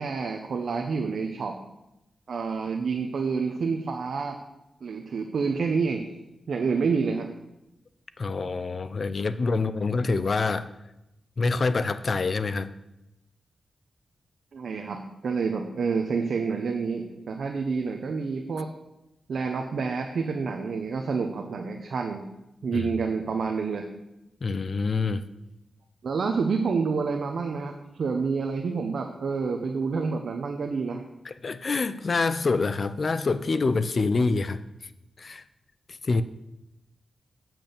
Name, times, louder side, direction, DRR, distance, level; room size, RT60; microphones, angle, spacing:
voice 1, 0.0-1.5 2.3-4.4 4.8-6.0 6.5-7.3 14.5-15.0 15.2-18.7 19.3-22.2 22.6-23.9 26.0-27.7 28.0-31.0, right 5 dB, 70° right, 3 dB, 0.9 m, -28 dB
voice 2, 8.2-10.7 11.4-12.7 22.7-22.9 24.4-25.2 31.2-34.6 35.2-35.4 36.0-36.2, left 4 dB, 45° left, 13 dB, 0.5 m, -26 dB
8.8 x 6.0 x 6.7 m, 0.92 s
wide cardioid pair, 115°, 0 cm